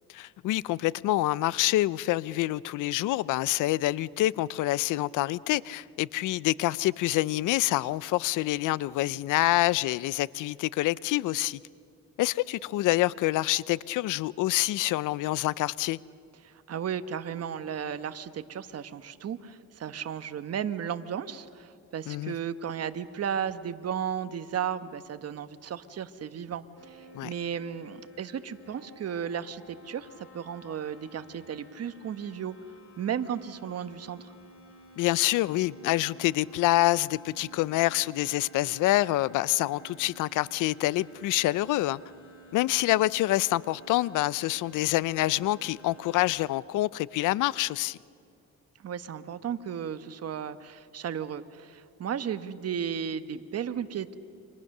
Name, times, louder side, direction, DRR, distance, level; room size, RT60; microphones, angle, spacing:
voice 1, 0.1-11.6 12.2-16.0 22.1-22.3 27.1-27.3 35.0-42.0 42.5-48.0, left 17 dB, 90° left, 0.6 m, -26 dB
voice 2, 16.4-32.5 33.0-34.3 48.8-54.1, right 8 dB, 55° right, 1.2 m, -34 dB
sound 1, 26.8-46.4, right 2 dB, 45° left, 7.0 m, -53 dB
29.5 x 25.0 x 6.7 m
cardioid pair, 90°, 30 cm